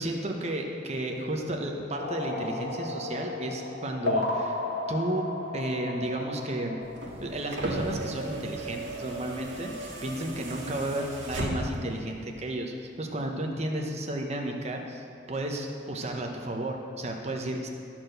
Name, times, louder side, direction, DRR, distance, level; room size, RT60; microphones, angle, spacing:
voice 1, 0.0-4.6 4.9-5.3 5.5-6.8 7.2-17.7, right 1 dB, 35° right, 2 dB, 0.9 m, -33 dB
sound 1, 2.0-7.3, left 2 dB, 70° left, 1.7 m, -33 dB
sound 2, 6.8-11.9 13.2-13.3, right 2 dB, 75° right, 1.7 m, -36 dB
13.0 x 4.5 x 6.5 m, 2.5 s
head